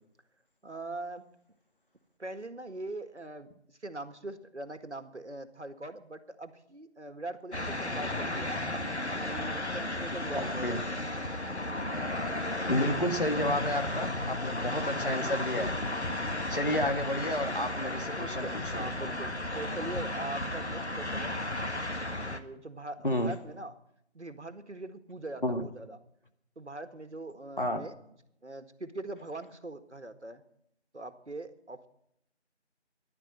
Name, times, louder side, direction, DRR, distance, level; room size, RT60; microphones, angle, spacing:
voice 1, 0.6-1.3 2.2-8.6 9.1-10.8 17.0-17.1 18.2-21.4 22.2-23.7 24.1-26.0 26.6-28.0 28.4-30.4 30.9-31.9, right 2 dB, 75° right, 10 dB, 1.8 m, -42 dB
sound 1, 7.5-22.4, left 1 dB, 70° left, 1.8 m, -34 dB
voice 2, 10.3-10.8 12.7-15.7 16.5-18.5 18.7-18.8 23.0-23.3 25.4-25.7 27.6-27.8, left 1 dB, 50° left, 5 dB, 1.9 m, -31 dB
14.5 x 11.0 x 7.6 m, 0.76 s
figure-of-eight pair, 170°, 35 cm